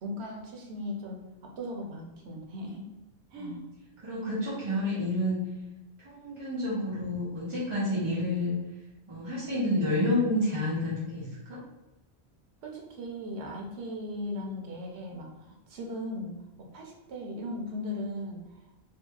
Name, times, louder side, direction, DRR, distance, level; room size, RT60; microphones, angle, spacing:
voice 1, 0.0-3.0 3.3-3.6 12.6-18.4, left 1 dB, 85° right, 0 dB, 0.9 m, -38 dB
voice 2, 4.0-5.4 6.0-8.6 9.1-11.6, left 1 dB, 35° right, -9 dB, 0.7 m, -29 dB
2.7 x 2.7 x 2.3 m, 0.97 s
omnidirectional pair, 1.1 m